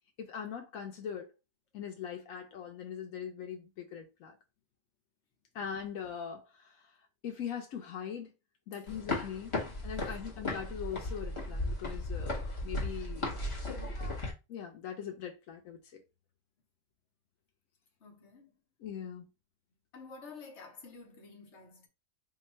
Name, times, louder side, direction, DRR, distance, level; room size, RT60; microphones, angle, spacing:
voice 1, 0.2-1.3 1.7-4.4 5.5-6.9 7.2-8.3 8.7-9.5 9.8-13.4 14.5-16.0 18.8-19.3, left 8 dB, 85° left, 1.1 m, -41 dB
sound 1, 8.9-14.3, left 2 dB, 25° left, 1.0 m, -36 dB
voice 2, 18.0-18.5 19.9-21.9, left 4 dB, 60° left, 1.3 m, -50 dB
3.5 x 2.3 x 4.2 m
omnidirectional pair, 1.4 m